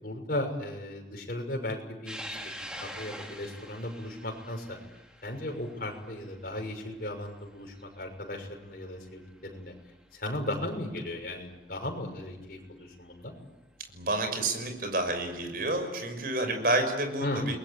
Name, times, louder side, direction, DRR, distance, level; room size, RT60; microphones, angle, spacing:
voice 1, 0.0-4.8 5.2-9.7 10.1-13.3 17.2-17.5, left 1 dB, 55° left, 2 dB, 6.3 m, -36 dB
sound 1, 2.1-8.7 9.2-9.3 10.5-10.6 12.8-12.9 14.3-14.5, equal, 5° right, 3.3 m, -45 dB
voice 2, 13.9-17.6, right 2 dB, 55° right, 6 dB, 6.1 m, -29 dB
30.0 x 22.0 x 8.7 m, 1.0 s
head